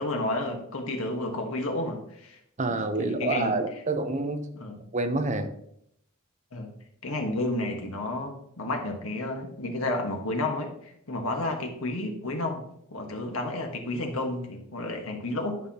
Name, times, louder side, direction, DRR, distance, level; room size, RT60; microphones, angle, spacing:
voice 1, 0.0-2.4 3.0-3.6 4.5-4.9 6.5-6.7 7.0-15.6, left 2 dB, 75° left, 3 dB, 1.4 m, -31 dB
voice 2, 2.6-4.5 4.9-5.5, right 2 dB, 35° right, 7 dB, 0.7 m, -27 dB
11.0 x 5.7 x 2.9 m, 0.72 s
head